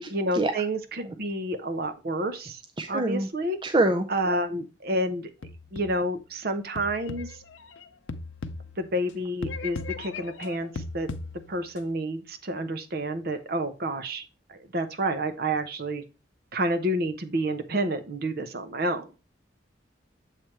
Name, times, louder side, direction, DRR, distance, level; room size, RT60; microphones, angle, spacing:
voice 1, 0.1-2.6 2.9-3.6 4.1-5.3 5.7-7.3 8.8-11.1 11.5-14.2 14.5-16.0 16.5-19.1, right 1 dB, 50° right, 8 dB, 0.7 m, -29 dB
voice 2, 2.8-3.3 3.6-4.0, right 2 dB, 25° right, 7 dB, 0.4 m, -24 dB
sound 1, 5.4-6.2 6.8-9.1 9.4-11.8, left 3 dB, 80° left, 0.6 m, -38 dB
7.4 x 3.4 x 4.3 m, 0.31 s
head